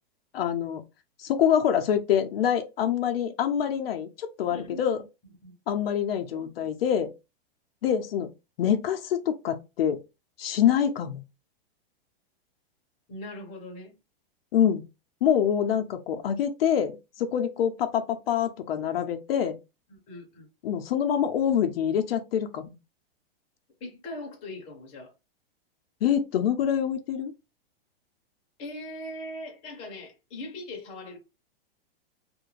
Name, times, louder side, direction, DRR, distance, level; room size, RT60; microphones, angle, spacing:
voice 1, 0.3-0.8 1.2-5.0 5.7-7.1 7.8-8.3 8.6-10.0 10.4-11.2 14.5-14.8 15.2-19.6 20.6-22.7 26.0-27.3, left 9 dB, 70° left, 0.5 m, -25 dB
voice 2, 4.5-4.9 5.4-5.6 13.1-13.9 19.9-20.5 23.8-25.1 28.6-31.2, left 1 dB, 20° left, 0.7 m, -40 dB
2.4 x 2.1 x 3.0 m
supercardioid pair, 165°, 30 cm